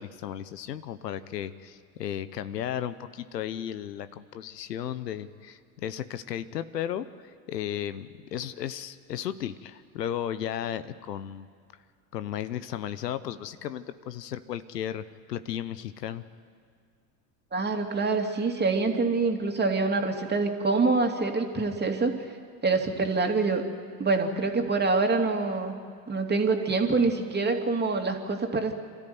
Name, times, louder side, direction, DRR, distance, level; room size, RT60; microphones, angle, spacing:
voice 1, 0.0-11.5 12.1-16.2, left 10 dB, 85° left, 13 dB, 0.9 m, -35 dB
voice 2, 17.5-22.1 22.6-23.6 24.0-25.7 26.1-28.7, right 3 dB, 20° right, 3 dB, 2.7 m, -25 dB
26.5 x 13.5 x 9.4 m, 2.1 s
hypercardioid pair, 85°, 47 cm